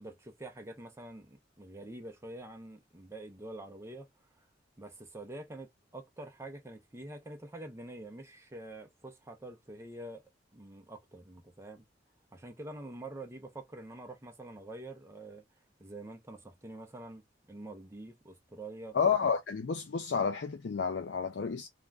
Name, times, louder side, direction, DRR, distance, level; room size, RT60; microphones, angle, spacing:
voice 1, 0.0-4.5 4.8-10.2 10.5-11.8 12.3-15.5 15.8-17.2 17.5-19.0, right 1 dB, 15° right, 0.5 m, -46 dB
voice 2, 18.9-21.7, left 6 dB, 70° left, 0.5 m, -30 dB
2.5 x 2.2 x 3.2 m
head